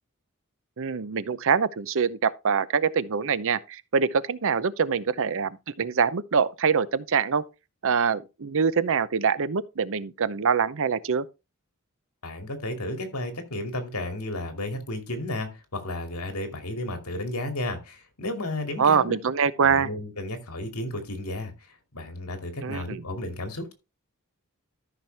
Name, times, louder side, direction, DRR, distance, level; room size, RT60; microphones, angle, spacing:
voice 1, 0.8-7.4 7.8-11.3 18.8-19.9 22.6-23.0, right 6 dB, 65° right, 0.7 m, -24 dB
voice 2, 12.2-19.2 19.6-21.5 21.9-23.7, left 1 dB, 80° left, 2.4 m, -33 dB
13.5 x 6.0 x 3.4 m
head